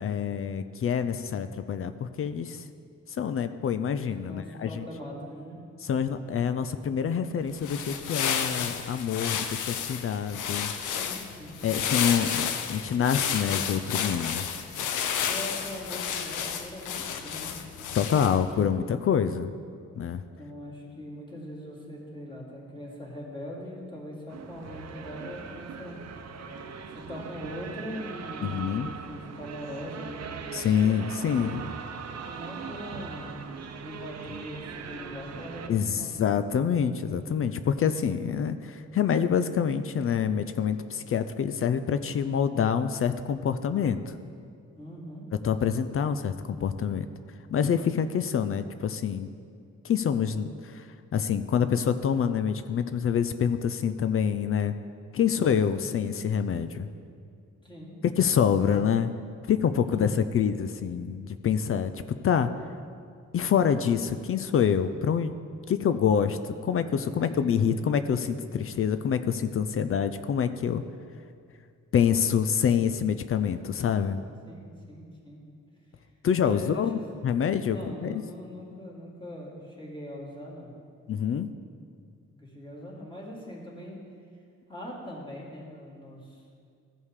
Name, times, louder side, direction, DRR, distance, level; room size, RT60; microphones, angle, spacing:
voice 1, 0.0-2.6 3.1-4.9 5.8-10.7 11.6-14.4 17.9-19.5 20.0-20.2 28.4-28.9 30.5-31.7 35.7-44.2 45.4-47.1 47.5-49.3 49.8-50.9 51.1-54.7 55.1-56.9 58.0-59.1 59.4-61.9 62.2-62.5 63.3-65.3 65.7-70.8 71.9-74.2 76.2-78.2 81.1-81.5, left 7 dB, 45° left, 11 dB, 0.5 m, -26 dB
voice 2, 4.3-5.6 11.0-11.6 15.2-17.5 20.3-26.0 26.9-31.5 32.2-33.4 33.8-36.2 44.7-45.2 57.6-57.9 59.8-60.2 67.2-67.4 67.7-67.9 74.4-75.4 76.4-77.0 77.7-80.7 82.3-84.0 84.7-86.4, equal, 15° left, -4 dB, 2.6 m, -41 dB
sound 1, 7.5-18.5, left 8 dB, 90° left, 0.7 m, -31 dB
sound 2, 24.3-35.7, right 6 dB, 60° right, 0.8 m, -40 dB
14.5 x 5.4 x 4.8 m, 2.3 s
cardioid pair, 90°, 30 cm